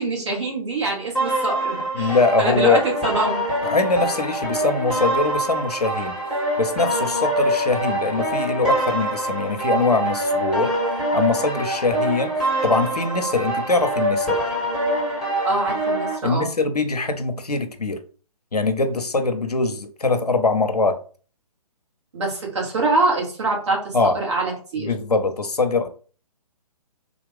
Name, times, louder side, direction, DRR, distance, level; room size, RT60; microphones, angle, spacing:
voice 1, 0.0-3.4 15.4-16.5 22.1-24.9, right 3 dB, 50° right, 1.6 m, -24 dB
sound 1, 1.1-16.2, right 1 dB, ahead, 1.1 m, -24 dB
voice 2, 2.0-2.8 3.6-6.1 6.6-10.7 11.1-14.4 16.2-18.0 18.5-21.0 23.9-24.2 24.8-25.9, left 3 dB, 85° left, 0.7 m, -22 dB
3.6 x 2.4 x 3.4 m
figure-of-eight pair, 135°, 20 cm